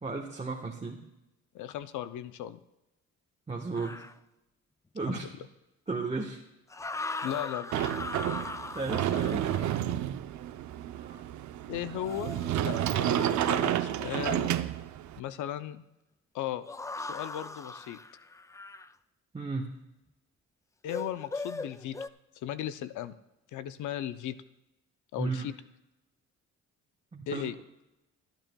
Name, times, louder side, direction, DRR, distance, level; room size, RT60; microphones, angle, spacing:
voice 1, 0.0-1.0 3.5-4.0 4.9-5.3 5.9-6.4 8.2-9.9 10.9-11.2 19.3-19.7 25.2-25.5 27.1-27.4, right 3 dB, 20° right, 0 dB, 1.1 m, -35 dB
voice 2, 1.5-2.6 5.1-5.3 7.2-7.7 11.7-12.3 12.6-14.5 15.2-15.8 16.3-16.7 17.0-18.0 20.8-22.0 22.4-23.2 23.5-24.4 25.1-25.5 27.3-27.5, left 11 dB, 75° left, 12 dB, 0.6 m, -36 dB
sound 1, 3.7-4.2 6.7-9.9 12.0-13.8 16.7-18.9 20.9-22.1, left 3 dB, 10° left, 0.3 m, -40 dB
Sliding door, 7.7-15.2, right 11 dB, 70° right, 0.6 m, -30 dB
24.5 x 9.0 x 2.3 m, 0.94 s
cardioid pair, 90°, 30 cm